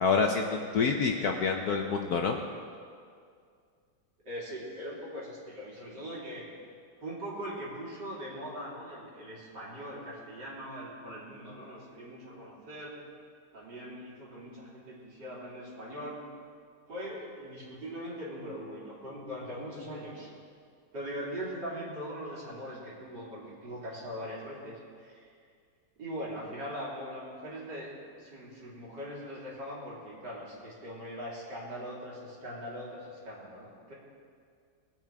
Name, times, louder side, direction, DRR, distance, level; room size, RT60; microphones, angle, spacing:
voice 1, 0.0-2.4, left 5 dB, 65° left, 3 dB, 1.0 m, -27 dB
voice 2, 4.3-6.4 7.0-13.0 13.5-16.2 16.9-20.3 20.9-25.3 26.0-27.9 28.2-33.9, equal, 60° right, -6 dB, 3.8 m, -41 dB
20.5 x 8.8 x 4.6 m, 2.2 s
omnidirectional pair, 2.1 m